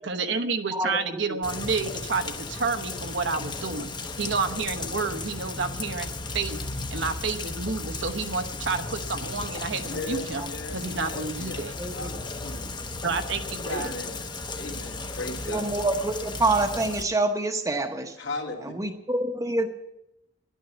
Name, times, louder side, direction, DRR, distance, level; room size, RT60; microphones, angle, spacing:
voice 1, 0.0-3.9 4.2-6.1 6.3-10.4 10.7-11.7 13.0-13.9, right 4 dB, 65° right, 8 dB, 1.0 m, -30 dB
Rain, 1.4-17.0, left 3 dB, 20° left, 0.8 m, -35 dB
voice 2, 9.9-10.8 11.0-11.6 11.9-12.7 13.7-14.2 14.6-15.6 18.2-18.7, left 3 dB, 65° left, -1 dB, 2.5 m, -36 dB
voice 3, 11.8-12.1 15.5-18.1 18.8-19.7, right 2 dB, 15° right, 4 dB, 0.9 m, -26 dB
11.0 x 9.2 x 9.0 m, 0.87 s
head